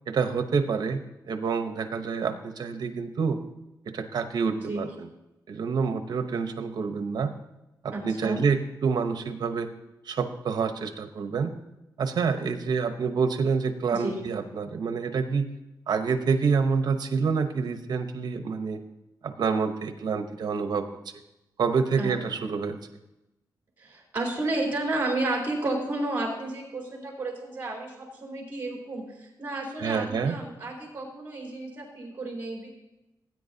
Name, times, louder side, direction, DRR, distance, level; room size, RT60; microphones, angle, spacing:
voice 1, 0.1-3.4 3.9-5.1 5.5-7.3 7.8-9.7 10.1-11.5 12.0-15.5 15.9-18.8 19.2-20.9 21.6-22.8 29.8-30.4, right 5 dB, 65° right, 8 dB, 0.9 m, -27 dB
voice 2, 7.9-8.4 13.9-14.2 22.0-22.1 23.8-32.7, right 2 dB, 25° right, -1 dB, 3.6 m, -32 dB
18.0 x 9.4 x 2.8 m, 0.97 s
wide cardioid pair, 155°, 8 cm